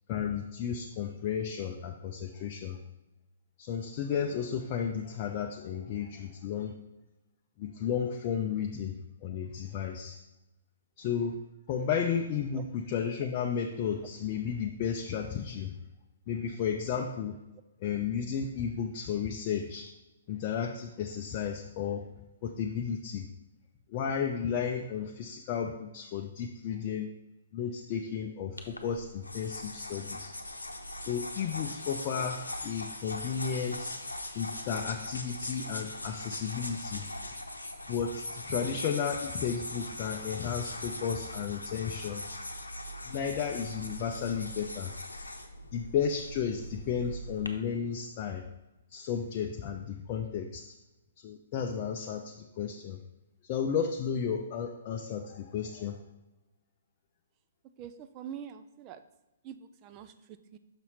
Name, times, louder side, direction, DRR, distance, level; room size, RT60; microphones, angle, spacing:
voice 1, 0.1-2.8 3.6-6.7 7.6-10.2 11.0-11.4 11.7-15.7 16.3-17.4 17.8-19.9 20.3-22.0 22.4-23.3 23.9-27.1 27.5-30.3 31.1-34.0 34.3-37.1 37.9-42.3 43.1-45.0 45.7-48.4 48.9-50.6 51.2-53.0 53.5-56.0, left 7 dB, 35° left, 2 dB, 0.5 m, -33 dB
sound 1, 28.6-47.5, left 1 dB, 80° left, 0.8 m, -40 dB
voice 2, 57.8-59.0 59.4-60.6, right 9 dB, 30° right, 11 dB, 0.4 m, -45 dB
6.0 x 5.6 x 4.2 m, 0.99 s
figure-of-eight pair, 120°, 0 cm